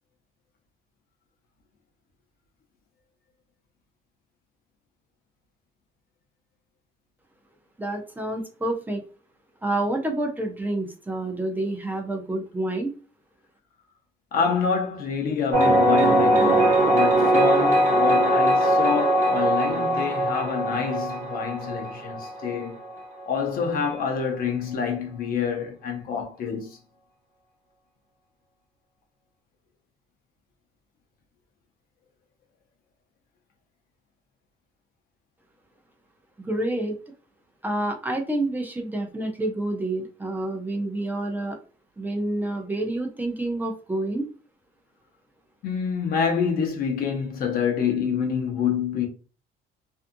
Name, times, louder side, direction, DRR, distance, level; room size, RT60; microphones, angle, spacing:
voice 1, 7.8-9.0 9.6-12.9 36.4-36.9 37.6-41.6 42.0-44.3, right 1 dB, 10° right, 0.6 m, -28 dB
voice 2, 14.3-22.8 23.3-26.8 45.6-49.1, left 6 dB, 60° left, 0.7 m, -27 dB
sound 1, 15.5-23.0, right 1 dB, 45° right, 0.8 m, -21 dB
2.6 x 2.4 x 2.5 m
cardioid pair, 110°, 17 cm